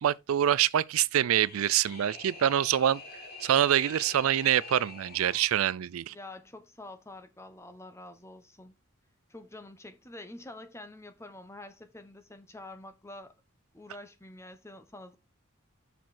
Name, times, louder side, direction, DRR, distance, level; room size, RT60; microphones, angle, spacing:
voice 1, 0.0-3.0 3.4-6.1, right 10 dB, 80° right, 0.4 m, -25 dB
sound 1, 1.1-5.6, left 3 dB, 45° left, 2.9 m, -46 dB
voice 2, 6.1-8.8 9.3-13.3 13.7-15.2, left 2 dB, 15° left, 1.0 m, -47 dB
6.8 x 6.1 x 4.1 m
head